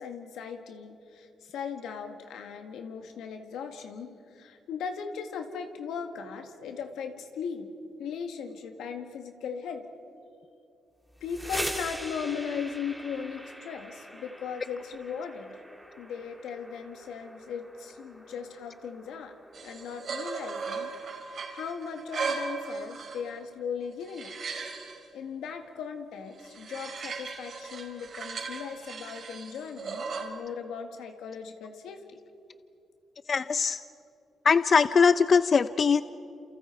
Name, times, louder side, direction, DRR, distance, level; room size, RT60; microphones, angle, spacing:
voice 1, 0.0-7.7 8.0-9.9 11.2-15.6 16.0-19.4 19.6-20.9 21.3-24.3 25.1-32.2, left 6 dB, 90° left, 5 dB, 1.9 m, -38 dB
sound 1, 11.1-20.8, equal, ahead, 2.6 m, -42 dB
sound 2, 19.5-23.4 23.8-25.0 26.4-30.3, right 4 dB, 60° right, 3.9 m, -37 dB
voice 2, 33.3-33.8 34.4-36.0, left 5 dB, 45° left, 13 dB, 0.5 m, -21 dB
28.5 x 28.0 x 4.6 m, 2.6 s
cardioid pair, 95°, 0 cm